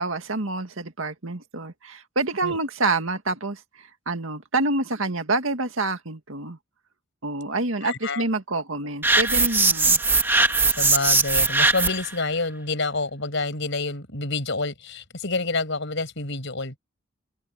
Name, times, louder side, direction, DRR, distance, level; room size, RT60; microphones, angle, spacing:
voice 1, 0.0-6.6 7.2-10.0, right 2 dB, 70° right, 2.1 m, -27 dB
voice 2, 7.8-8.2 8.5-8.6 10.8-16.8, left 3 dB, 60° left, 6.5 m, -28 dB
sound 1, 9.0-12.1, right 3 dB, 10° right, 1.4 m, -20 dB
head